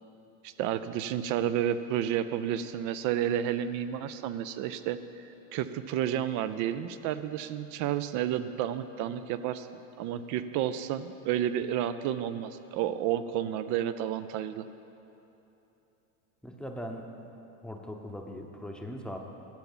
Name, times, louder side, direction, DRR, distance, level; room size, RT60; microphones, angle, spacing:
voice 1, 0.4-9.7 10.0-14.6, right 10 dB, 45° right, 12 dB, 0.4 m, -31 dB
voice 2, 16.4-17.1 17.6-19.2, equal, ahead, 1 dB, 0.8 m, -40 dB
12.0 x 5.8 x 7.3 m, 3.0 s
supercardioid pair, 120°, 44 cm